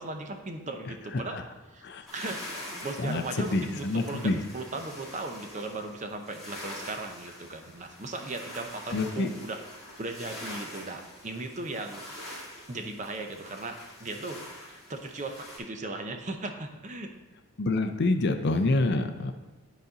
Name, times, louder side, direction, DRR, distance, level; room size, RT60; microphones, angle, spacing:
voice 1, 0.0-1.9 2.1-9.6 10.0-12.0 12.7-17.1, right 2 dB, 35° right, 5 dB, 0.6 m, -37 dB
sound 1, 2.1-15.6, left 1 dB, ahead, 2.5 m, -44 dB
voice 2, 3.0-4.4 8.9-9.3 17.6-19.3, left 2 dB, 50° left, 7 dB, 0.5 m, -27 dB
10.5 x 4.1 x 4.0 m, 1.3 s
head